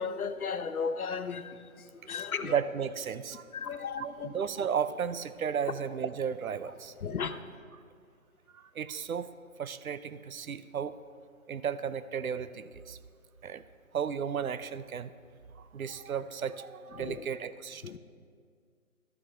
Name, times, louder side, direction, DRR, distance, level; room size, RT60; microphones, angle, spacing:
voice 1, 0.0-1.6 2.1-2.5 3.5-4.3 7.0-7.3 17.0-17.2 17.8-18.0, left 6 dB, 90° left, 10 dB, 0.8 m, -34 dB
voice 2, 2.3-6.9 7.3-7.4 7.7-7.8 8.5-9.3 9.6-11.0 11.5-13.0 13.4-13.6 13.9-15.1 15.6-17.8, right 7 dB, 75° right, 14 dB, 0.6 m, -34 dB
12.5 x 6.6 x 4.3 m, 2.1 s
hypercardioid pair, 175°, 42 cm